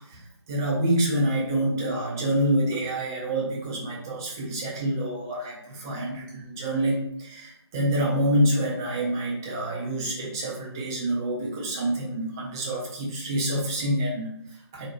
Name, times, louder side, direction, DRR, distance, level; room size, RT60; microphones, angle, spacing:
voice 1, 0.0-14.9, right 1 dB, 10° right, -3 dB, 0.3 m, -27 dB
3.7 x 2.1 x 4.0 m, 0.74 s
figure-of-eight pair, 155°, 14 cm